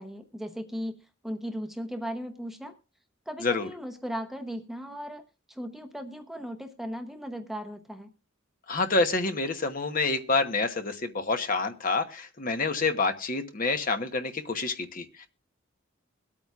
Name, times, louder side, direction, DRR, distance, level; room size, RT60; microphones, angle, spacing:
voice 1, 0.0-2.8 3.3-8.1, equal, ahead, 6 dB, 0.8 m, -37 dB
voice 2, 8.7-15.3, left 3 dB, 45° left, 7 dB, 1.0 m, -28 dB
22.5 x 8.6 x 2.4 m, 0.31 s
head